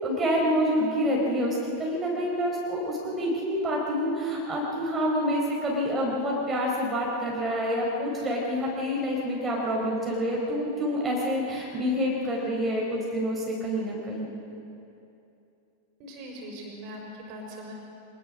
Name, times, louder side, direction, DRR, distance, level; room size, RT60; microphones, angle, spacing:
voice 1, 0.0-14.3, equal, 15° right, -3 dB, 4.2 m, -27 dB
voice 2, 16.0-17.7, equal, 45° right, 0 dB, 5.5 m, -41 dB
25.0 x 20.0 x 6.2 m, 2.8 s
figure-of-eight pair, 90°, 0 cm